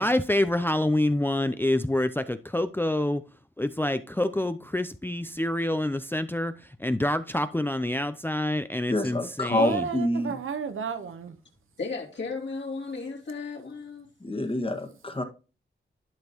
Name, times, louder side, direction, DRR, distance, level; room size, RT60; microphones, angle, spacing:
voice 1, 0.0-3.2 3.6-9.9, left 1 dB, 10° left, 0.5 m, -27 dB
voice 2, 8.9-10.3 14.2-15.2, left 1 dB, 25° left, 1.5 m, -27 dB
voice 3, 9.5-11.4, right 6 dB, 90° right, 1.0 m, -32 dB
voice 4, 11.8-14.1, left 4 dB, 60° left, 2.8 m, -35 dB
11.5 x 5.1 x 2.9 m
cardioid pair, 70°, 20 cm